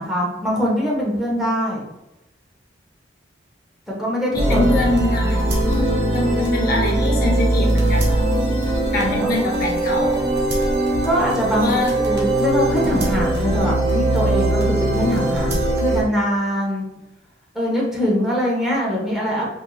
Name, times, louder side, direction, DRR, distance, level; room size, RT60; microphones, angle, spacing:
voice 1, 0.0-1.8 4.0-4.8 9.2-9.5 11.0-11.7 12.0-16.8 17.5-19.5, equal, ahead, -5 dB, 0.9 m, -22 dB
voice 2, 4.3-5.4 5.7-8.2 8.9-10.2 11.5-11.9, left 1 dB, 55° left, 0 dB, 0.7 m, -23 dB
sound 1, 4.3-16.0, right 1 dB, 70° right, 1.1 m, -20 dB
4.6 x 2.6 x 2.3 m, 0.94 s
head